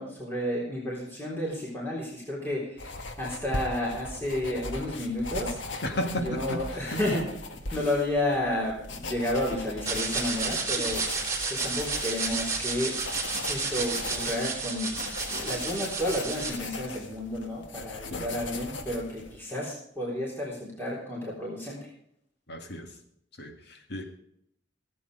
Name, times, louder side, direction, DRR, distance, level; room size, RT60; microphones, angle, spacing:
voice 1, 0.0-5.6 6.2-7.3 7.7-11.0 11.5-12.9 13.5-14.9 15.3-21.9, left 1 dB, 10° left, -5 dB, 3.8 m, -31 dB
sound 1, 2.8-19.4, left 2 dB, 90° left, 1.5 m, -39 dB
voice 2, 5.8-7.0 18.1-18.4 22.5-22.9 23.4-24.0, equal, 60° left, 6 dB, 2.0 m, -34 dB
sound 2, 9.8-16.5, right 4 dB, 20° right, 3.3 m, -31 dB
15.5 x 8.7 x 4.9 m, 0.72 s
head